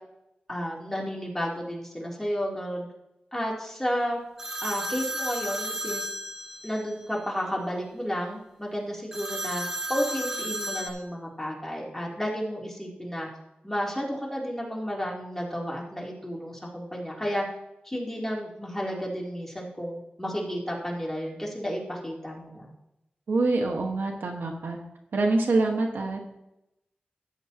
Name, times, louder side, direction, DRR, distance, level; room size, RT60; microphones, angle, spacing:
voice 1, 0.5-2.9 3.3-4.2 4.6-6.1 6.6-13.3 13.6-17.4 17.8-22.7, equal, 10° left, -3 dB, 3.1 m, -32 dB
sound 1, 4.4-6.9 9.1-10.9, right 1 dB, 15° right, 2.0 m, -33 dB
voice 2, 23.3-24.8 25.1-26.2, right 2 dB, 85° right, 2 dB, 1.4 m, -25 dB
14.0 x 9.1 x 2.9 m, 0.88 s
cardioid pair, 60°, 3 cm